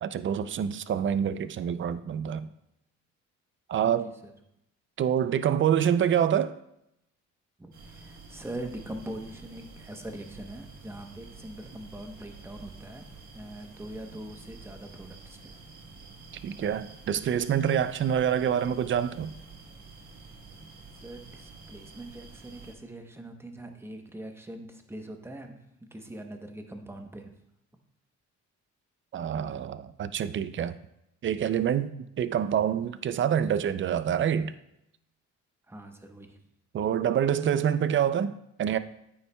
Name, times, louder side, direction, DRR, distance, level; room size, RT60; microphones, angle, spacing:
voice 1, 0.0-2.5 3.7-4.1 5.0-6.6 16.4-19.3 29.1-30.8 31.2-34.5 36.7-38.8, right 9 dB, 40° right, 0.4 m, -26 dB
voice 2, 3.8-4.3 7.6-13.1 13.3-15.6 21.0-27.3 35.7-36.4, right 1 dB, 10° right, 0.9 m, -42 dB
sound 1, 7.7-22.7, right 3 dB, 65° right, 1.5 m, -49 dB
9.1 x 7.1 x 2.3 m
cardioid pair, 90°, 30 cm